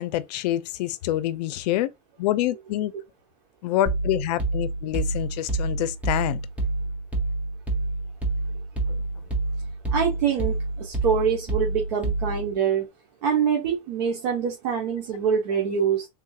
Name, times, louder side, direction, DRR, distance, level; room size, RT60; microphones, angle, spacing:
voice 1, 0.0-1.9 2.2-2.9 3.6-6.4 8.9-9.0, left 14 dB, 75° left, 0.5 m, -26 dB
sound 1, 3.9-12.5, right 2 dB, 5° right, 0.6 m, -28 dB
voice 2, 9.9-12.9 13.2-16.1, right 7 dB, 75° right, 1.0 m, -25 dB
3.6 x 2.3 x 2.7 m
supercardioid pair, 160°, 21 cm